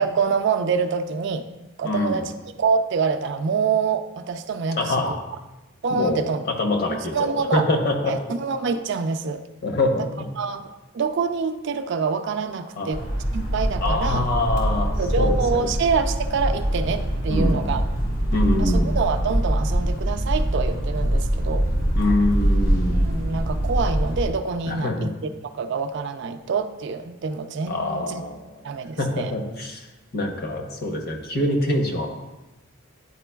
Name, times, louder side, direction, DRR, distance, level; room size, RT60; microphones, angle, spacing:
voice 1, 0.0-1.5 1.8-5.2 5.8-6.4 6.9-7.6 8.0-9.4 10.4-13.0 13.3-14.3 15.0-17.9 18.6-21.7 22.9-25.1 25.5-28.2 28.6-29.3, right 5 dB, 55° right, 8 dB, 0.3 m, -26 dB
voice 2, 1.8-2.2 4.8-5.2 5.9-6.2 6.6-8.1 9.6-10.3 12.8-13.0 13.8-14.9 15.2-15.7 17.3-17.6 18.3-19.0 21.9-23.1 24.7-25.1 27.7-28.5 29.0-29.9 30.1-32.1, left 1 dB, 50° left, 3 dB, 0.8 m, -24 dB
sound 1, 12.9-24.3, equal, 80° left, 1.7 m, -23 dB
9.8 x 4.5 x 2.3 m, 1.1 s
head